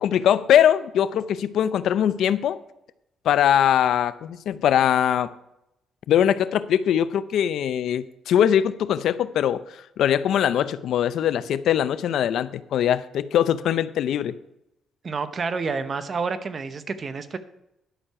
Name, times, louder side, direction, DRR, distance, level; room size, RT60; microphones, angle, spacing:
voice 1, 0.0-2.6 3.2-5.3 6.1-9.6 10.0-14.3, left 10 dB, 75° left, 14 dB, 0.5 m, -21 dB
voice 2, 15.0-17.4, right 4 dB, 40° right, 11 dB, 0.9 m, -29 dB
11.5 x 6.5 x 5.7 m, 0.84 s
cardioid pair, 90°, 0 cm